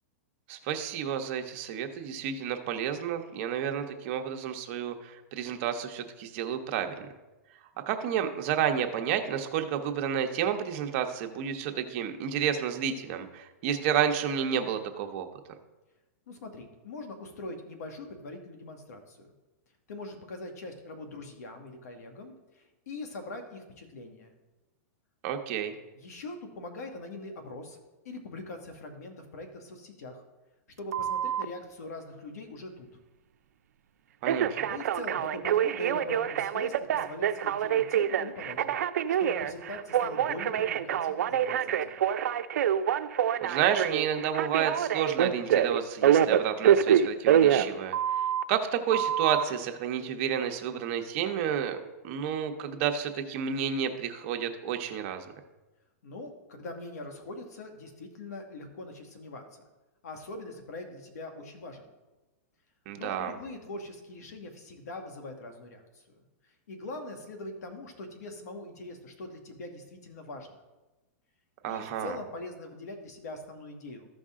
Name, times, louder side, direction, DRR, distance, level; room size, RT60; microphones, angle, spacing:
voice 1, 0.5-7.1 7.9-15.3 25.2-25.7 34.2-34.6 43.4-48.0 48.5-51.8 52.0-55.3 62.9-63.3 71.6-72.2, right 8 dB, 45° right, 5 dB, 0.9 m, -30 dB
voice 2, 16.3-19.3 19.9-24.3 25.9-27.8 28.0-30.2 30.8-32.9 34.6-38.7 39.2-42.0 56.0-59.6 60.0-61.9 62.9-66.2 66.7-70.5 71.7-74.1, left 2 dB, 80° left, 5 dB, 1.8 m, -42 dB
Telephone, 30.9-31.5 34.2-48.4 48.9-49.4, right 9 dB, 80° right, 0.5 m, -26 dB
14.0 x 5.3 x 3.7 m, 1.1 s
hypercardioid pair, 140°, 9 cm